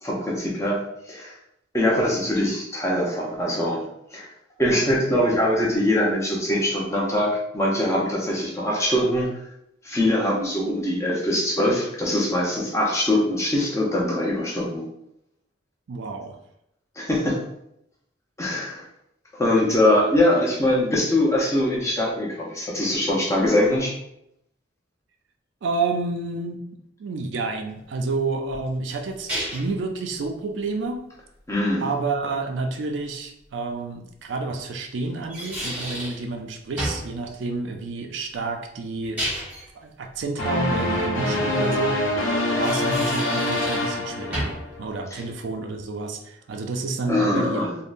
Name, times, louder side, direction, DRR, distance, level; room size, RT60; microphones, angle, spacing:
voice 1, 0.0-1.3 1.7-3.8 4.1-4.3 4.6-9.3 9.8-14.8 17.0-17.4 18.4-18.8 19.3-23.9 31.5-31.9 47.1-47.8, left 1 dB, 15° left, -4 dB, 0.6 m, -22 dB
voice 2, 15.9-16.4 25.6-26.6 27.0-31.1 31.8-39.3 39.7-47.7, right 3 dB, 65° right, 4 dB, 0.4 m, -29 dB
sound 1, 28.5-29.8 33.0-33.1 35.0-36.2 36.8-37.1 38.9-39.7 42.4-44.0 44.3-44.7, equal, 5° right, 0.9 m, -31 dB
sound 2, 40.4-44.9, left 1 dB, 85° left, 0.6 m, -25 dB
3.5 x 2.0 x 2.5 m, 0.79 s
head